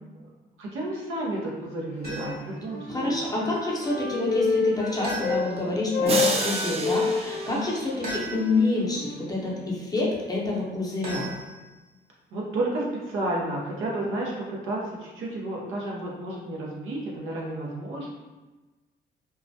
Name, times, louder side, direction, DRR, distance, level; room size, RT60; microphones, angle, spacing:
voice 1, 0.6-3.1 7.5-7.7 12.3-18.1, right 1 dB, 85° right, -3 dB, 0.6 m, -31 dB
sound 1, 2.0-2.6 5.0-5.8 8.0-8.7 11.0-11.9, right 1 dB, 50° right, 1.0 m, -37 dB
Wind instrument woodwind instrument, 2.1-5.5 5.8-9.7, left 4 dB, 85° left, 0.5 m, -30 dB
voice 2, 2.9-11.3, left 2 dB, 20° left, -4 dB, 0.6 m, -28 dB
sound 2, 6.1-8.4, right 3 dB, 30° right, 0.4 m, -30 dB
2.2 x 2.1 x 2.6 m, 1.2 s
cardioid pair, 90°, 20 cm